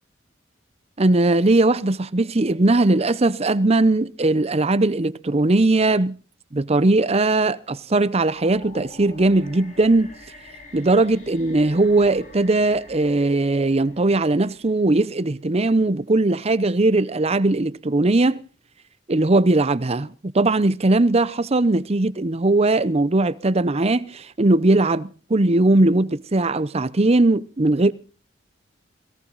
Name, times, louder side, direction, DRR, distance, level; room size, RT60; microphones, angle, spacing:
voice 1, 1.0-6.1 6.5-10.1 10.7-18.4 19.1-27.9, right 2 dB, 35° right, 0.7 m, -19 dB
sound 1, 8.2-15.3, left 2 dB, 45° left, 6.2 m, -46 dB
18.5 x 17.0 x 4.0 m
head